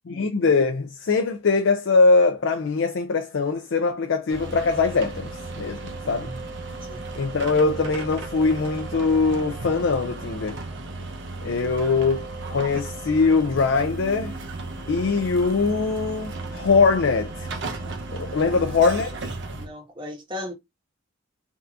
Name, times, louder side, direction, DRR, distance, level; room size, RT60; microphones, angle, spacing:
voice 1, 0.1-5.3 5.6-5.8 6.1-6.3 7.2-10.6 11.4-14.3 14.9-17.5 18.1-19.1, left 4 dB, 60° left, 0.4 m, -22 dB
sound 1, 4.3-19.7, right 3 dB, 60° right, 0.6 m, -35 dB
voice 2, 6.0-6.4 6.9-7.0 19.5-20.5, left 1 dB, 25° right, 1.4 m, -37 dB
3.5 x 2.7 x 2.4 m
head